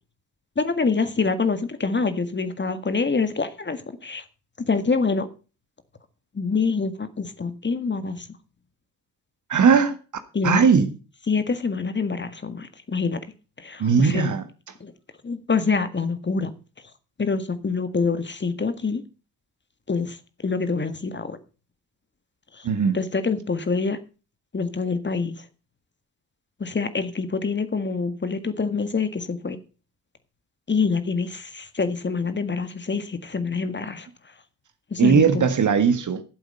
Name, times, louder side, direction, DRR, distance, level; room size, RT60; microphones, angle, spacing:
voice 1, 0.6-4.2 4.6-5.3 6.3-8.3 10.3-10.7 11.3-13.2 13.6-14.3 14.8-14.9 15.2-16.5 17.2-19.0 19.9-20.2 20.4-21.4 22.5-22.7 22.9-24.0 24.5-25.4 26.6-29.6 30.7-34.1 34.9-35.2, left 4 dB, 25° left, 1.8 m, -26 dB
voice 2, 9.5-10.0 10.4-10.9 13.8-14.4 22.6-23.0 35.0-36.2, right 6 dB, 40° right, 1.7 m, -18 dB
13.0 x 8.0 x 5.5 m
figure-of-eight pair, 45°, 44 cm